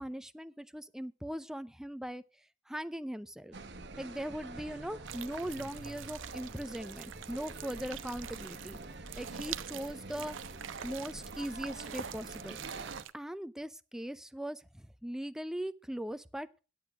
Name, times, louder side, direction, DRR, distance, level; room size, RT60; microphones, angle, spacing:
voice 1, 0.0-2.2 2.7-3.6 4.0-8.8 9.2-10.4 10.8-12.6 13.1-16.5, equal, 5° right, 0.5 m, -40 dB
sound 1, 3.5-13.0, right 3 dB, 60° right, 1.2 m, -46 dB
sound 2, 5.1-13.1, right 10 dB, 80° right, 0.6 m, -46 dB
10.0 x 8.4 x 5.8 m
head